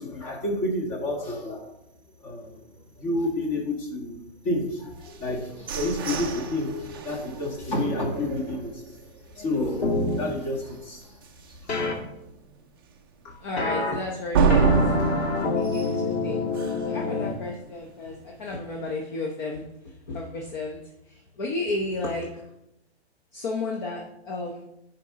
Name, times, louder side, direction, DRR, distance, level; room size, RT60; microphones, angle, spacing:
voice 1, 0.0-1.7 2.2-8.9 9.3-11.1, left 1 dB, 25° left, 0 dB, 1.6 m, -30 dB
sound 1, 5.1-8.9 9.4-9.5 9.9-10.3 10.7-10.8 11.2-11.3 14.3-17.0, right 5 dB, 25° right, 0.4 m, -27 dB
sound 2, 9.8-10.2 11.7-11.9 13.6-13.9 14.5-17.3, left 3 dB, 70° left, 1.6 m, -27 dB
voice 2, 13.2-22.5 23.3-24.7, left 2 dB, 45° left, 0 dB, 1.0 m, -33 dB
10.0 x 4.5 x 3.7 m, 0.86 s
hypercardioid pair, 160°, 33 cm